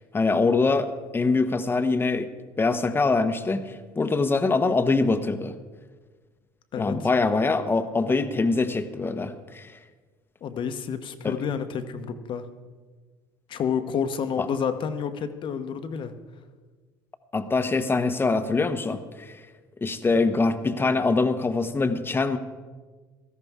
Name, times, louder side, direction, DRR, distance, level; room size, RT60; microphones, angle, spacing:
voice 1, 0.1-2.3 2.6-5.5 6.8-9.7 11.2-11.4 14.4-14.5 17.3-19.3 19.8-22.4, left 3 dB, 20° left, 10 dB, 1.0 m, -24 dB
voice 2, 6.7-7.1 10.4-12.5 13.5-16.1, left 7 dB, 50° left, 9 dB, 1.1 m, -29 dB
17.0 x 13.0 x 3.7 m, 1.4 s
supercardioid pair, 80°, 11 cm